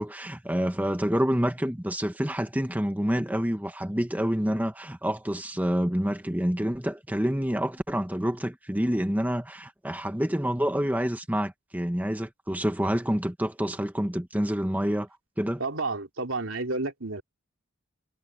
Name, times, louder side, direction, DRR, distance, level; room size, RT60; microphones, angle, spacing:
voice 1, 0.0-15.1 15.4-15.6, equal, 10° right, 1.3 m, -27 dB
voice 2, 15.6-17.2, right 3 dB, 80° right, 3.1 m, -30 dB
head